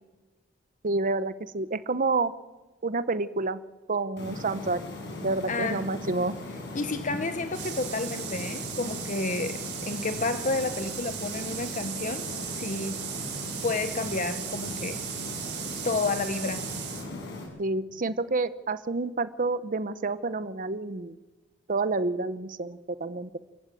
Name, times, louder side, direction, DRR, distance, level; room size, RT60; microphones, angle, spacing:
voice 1, 0.8-2.3 2.8-3.6 3.9-4.8 5.2-6.3 17.6-21.1 21.7-23.3, right 3 dB, 45° right, 14 dB, 0.8 m, -29 dB
sound 1, 4.2-17.4, left 2 dB, 60° left, 7.9 m, -38 dB
voice 2, 5.5-5.9 6.7-12.3 12.6-13.0 13.6-15.0 15.8-16.7, left 3 dB, 40° left, 9 dB, 1.1 m, -30 dB
sound 2, 7.5-17.1, right 10 dB, 60° right, 3.4 m, -37 dB
28.0 x 15.5 x 9.2 m, 1.2 s
head